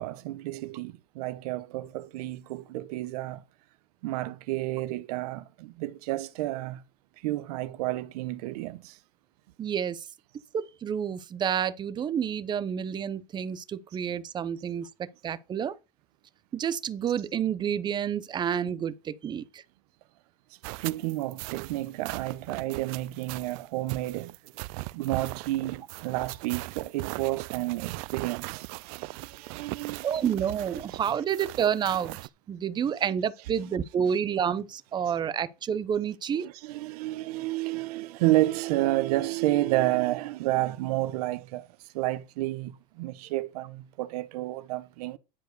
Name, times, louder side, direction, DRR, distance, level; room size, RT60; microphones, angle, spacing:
voice 1, 0.0-3.4 4.0-6.8 7.2-9.0 20.8-24.3 24.9-30.1 36.4-41.7 41.9-45.2, right 17 dB, 85° right, 0.9 m, -30 dB
voice 2, 9.6-10.0 10.5-15.7 16.5-19.6 30.0-32.2 32.5-36.5, right 8 dB, 25° right, 0.7 m, -29 dB
sound 1, 20.6-32.3, right 23 dB, 65° right, 0.4 m, -39 dB
10.5 x 4.6 x 6.5 m
supercardioid pair, 150°, 19 cm